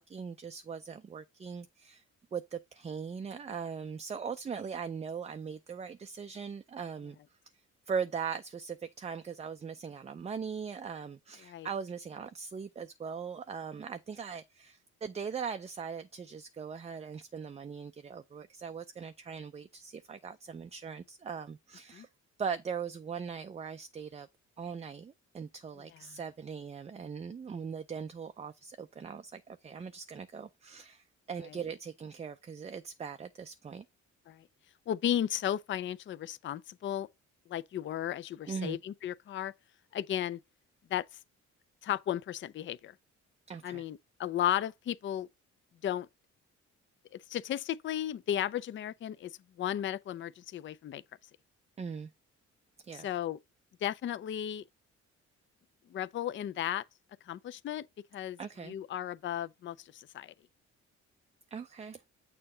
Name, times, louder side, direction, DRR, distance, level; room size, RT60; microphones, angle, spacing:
voice 1, 0.0-2.0 2.3-7.2 7.9-22.1 22.4-24.3 24.6-33.8 38.5-38.8 43.5-43.8 51.8-52.1 52.8-53.1 58.4-58.7 61.5-62.0, right 6 dB, 20° right, 0.4 m, -40 dB
voice 2, 34.9-37.1 37.5-39.5 39.9-40.4 40.9-41.1 41.8-42.9 43.6-45.3 45.8-46.1 47.1-51.0 52.9-53.4 53.8-54.6 55.9-56.8 57.2-57.9 58.1-58.4 58.6-60.3, left 11 dB, 40° left, 0.4 m, -34 dB
6.7 x 2.8 x 5.4 m
cardioid pair, 90°, 30 cm